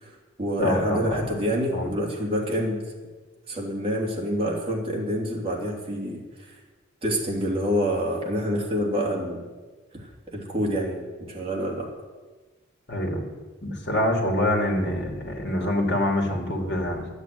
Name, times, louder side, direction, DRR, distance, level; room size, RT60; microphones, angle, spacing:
voice 1, 0.0-2.8 3.5-6.6 7.0-9.5 9.9-11.9, equal, 30° right, -2 dB, 2.9 m, -27 dB
voice 2, 0.6-1.3 1.7-1.9 12.9-13.3 13.6-17.1, left 1 dB, 55° left, 2 dB, 2.8 m, -25 dB
12.0 x 8.2 x 9.4 m, 1.3 s
head